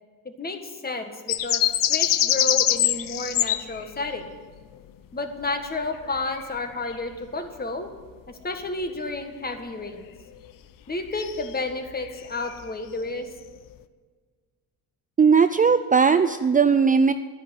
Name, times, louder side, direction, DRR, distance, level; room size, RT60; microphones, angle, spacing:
voice 1, 0.3-4.2 5.1-7.9 8.3-10.0 10.9-13.3, left 3 dB, 25° left, 6 dB, 1.7 m, -31 dB
sound 1, 1.3-4.2 6.0-6.5 6.9-7.0 11.2-11.5 11.9-12.1 12.4-12.5, left 12 dB, 70° left, 0.7 m, -23 dB
voice 2, 15.2-17.1, right 5 dB, 25° right, 10 dB, 0.4 m, -18 dB
10.5 x 10.5 x 9.1 m, 1.5 s
cardioid pair, 100°, 34 cm